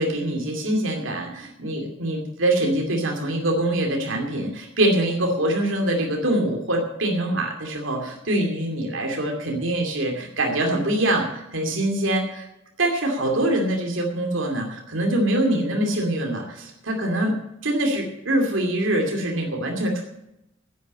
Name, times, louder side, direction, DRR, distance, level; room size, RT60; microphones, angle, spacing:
voice 1, 0.0-12.4 12.8-17.3 17.6-20.0, right 1 dB, 80° right, 1 dB, 2.4 m, -24 dB
11.0 x 9.3 x 8.6 m, 0.85 s
head